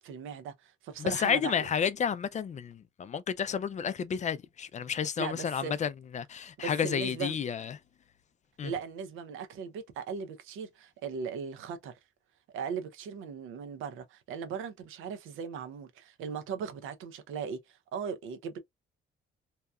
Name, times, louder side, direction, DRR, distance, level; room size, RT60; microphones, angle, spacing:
voice 1, 0.0-1.7 5.2-5.8 6.6-7.4 8.6-12.0 12.5-18.6, right 6 dB, 90° right, 0.6 m, -38 dB
voice 2, 1.0-7.8 8.6-8.7, left 7 dB, 35° left, 0.4 m, -31 dB
2.8 x 2.3 x 2.2 m
cardioid pair, 90°, 20 cm